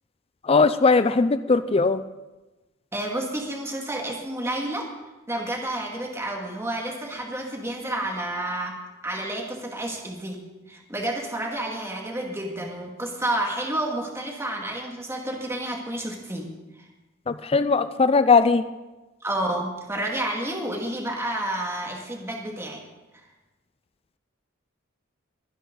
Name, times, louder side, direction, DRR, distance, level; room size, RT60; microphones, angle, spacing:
voice 1, 0.4-2.0 17.3-18.6, left 4 dB, 30° left, 12 dB, 0.5 m, -19 dB
voice 2, 2.9-4.9 5.3-8.8 9.0-10.4 10.7-16.5 19.2-22.8, right 1 dB, 15° right, 0 dB, 2.1 m, -30 dB
22.5 x 10.0 x 4.0 m, 1.1 s
head